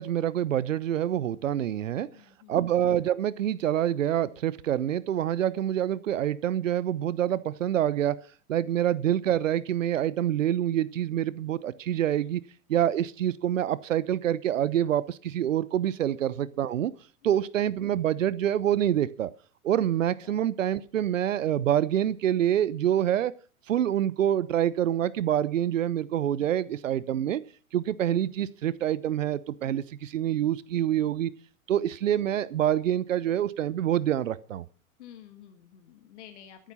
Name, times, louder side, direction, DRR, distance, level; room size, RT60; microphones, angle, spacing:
voice 1, 0.0-2.1 2.5-8.2 8.5-12.4 12.7-16.9 17.2-19.3 19.6-23.3 23.7-27.4 27.7-31.3 31.7-34.6, right 11 dB, 60° right, 19 dB, 1.0 m, -26 dB
voice 2, 2.0-2.6 8.6-8.8 12.2-12.3 17.2-17.4 20.2-20.3 35.0-36.7, left 10 dB, 50° left, 7 dB, 1.8 m, -51 dB
13.0 x 11.5 x 5.7 m, 0.39 s
figure-of-eight pair, 105°, 43 cm